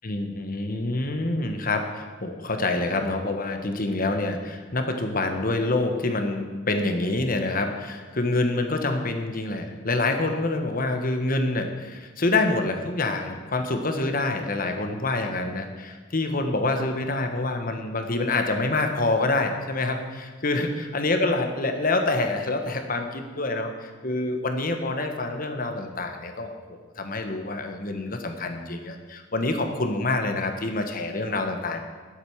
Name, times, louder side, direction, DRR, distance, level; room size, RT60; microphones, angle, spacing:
voice 1, 0.0-31.8, left 2 dB, 45° left, 5 dB, 1.3 m, -26 dB
12.0 x 8.2 x 7.2 m, 1.4 s
head